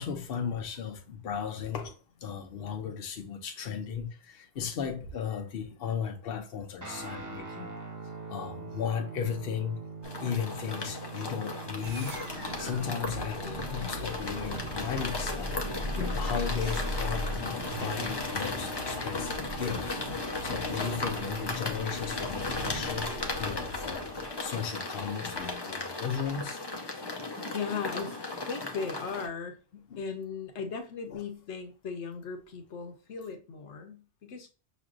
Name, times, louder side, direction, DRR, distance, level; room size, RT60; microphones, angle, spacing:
voice 1, 0.0-7.7 8.3-9.8 10.2-12.2 12.6-20.0 20.4-23.1 23.4-26.6 27.3-27.4 29.9-30.0 31.1-31.2, left 7 dB, 60° left, 0.9 m, -36 dB
Guitar, 6.8-15.6, right 4 dB, 20° right, 0.6 m, -44 dB
voice 2, 6.9-7.2 17.8-17.9 27.5-28.2 28.5-34.5, left 5 dB, 80° left, 1.1 m, -38 dB
sound 1, 10.0-29.3, left 2 dB, 25° left, 0.7 m, -36 dB
sound 2, 11.8-24.4, equal, 60° right, 1.5 m, -38 dB
5.9 x 3.1 x 2.4 m
omnidirectional pair, 1.2 m